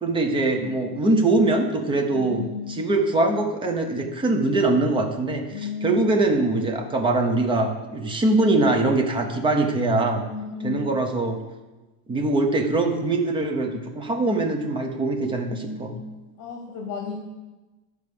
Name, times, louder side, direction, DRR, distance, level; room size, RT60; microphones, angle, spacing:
voice 1, 0.0-2.4 2.7-10.2 10.6-11.4 12.1-15.9, right 2 dB, 10° right, 3 dB, 0.6 m, -22 dB
voice 2, 2.1-2.8 5.5-6.3 10.2-10.9 15.4-16.0 16.4-17.2, left 5 dB, 55° left, 2 dB, 1.4 m, -33 dB
10.5 x 4.8 x 6.8 m, 1.1 s
cardioid pair, 165°, 46 cm